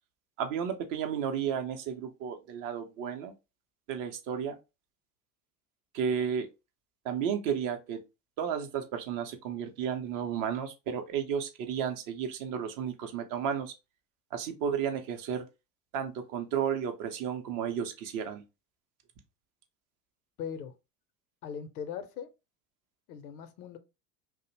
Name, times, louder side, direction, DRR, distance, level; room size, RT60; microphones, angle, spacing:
voice 1, 0.4-3.3 3.9-4.6 5.9-6.5 7.0-8.0 8.4-13.7 14.3-15.5 15.9-18.4, right 8 dB, 45° right, 0.6 m, -33 dB
voice 2, 20.4-20.7 21.4-22.3 23.1-23.8, left 7 dB, 70° left, 0.6 m, -39 dB
2.4 x 2.0 x 2.9 m
figure-of-eight pair, 70°, 46 cm